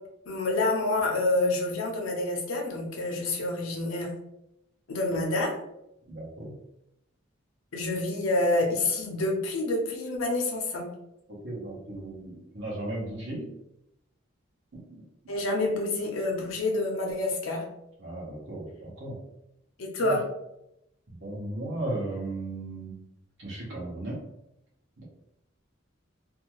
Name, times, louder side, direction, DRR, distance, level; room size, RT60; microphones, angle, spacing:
voice 1, 0.3-4.1 4.9-5.5 7.7-10.8 15.3-17.6 19.8-20.2, left 2 dB, 90° left, 0 dB, 0.7 m, -27 dB
voice 2, 6.1-6.5 11.3-13.5 14.7-15.0 18.0-19.2 20.0-20.2 21.1-23.0 23.4-24.2 25.0-25.1, right 2 dB, 60° right, -5 dB, 0.9 m, -36 dB
2.6 x 2.3 x 2.9 m, 0.84 s
head